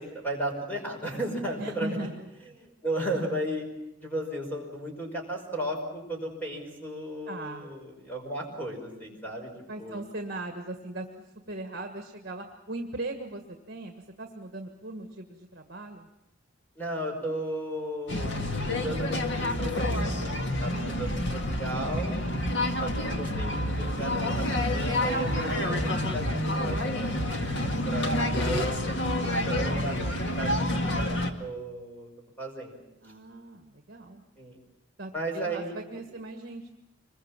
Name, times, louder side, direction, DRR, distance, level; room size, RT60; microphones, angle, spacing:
voice 1, 0.0-2.1 2.6-3.7 4.0-10.0 16.8-18.3 18.6-22.1 22.8-25.7 26.0-27.3 27.9-28.6 28.9-32.1 32.4-32.8 34.4-34.6 35.1-35.8, right 1 dB, 10° left, 1 dB, 5.6 m, -35 dB
voice 2, 1.6-2.1 7.3-7.7 9.7-11.1 11.5-16.1 20.7-21.3 33.0-34.2 35.0-36.7, right 2 dB, 50° right, 4 dB, 1.6 m, -39 dB
sound 1, 18.1-31.3, left 1 dB, 65° left, 2.0 m, -28 dB
25.5 x 22.0 x 7.4 m, 0.88 s
head